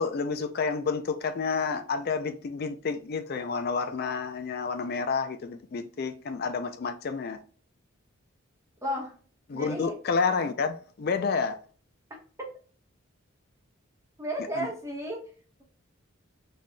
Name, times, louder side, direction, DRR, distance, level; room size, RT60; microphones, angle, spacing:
voice 1, 0.0-7.4 9.5-11.6 14.5-14.7, left 5 dB, 45° left, 0.4 m, -29 dB
voice 2, 8.8-9.1 9.5-9.9 14.2-15.2, equal, 15° right, 1.1 m, -33 dB
4.1 x 3.2 x 2.2 m
head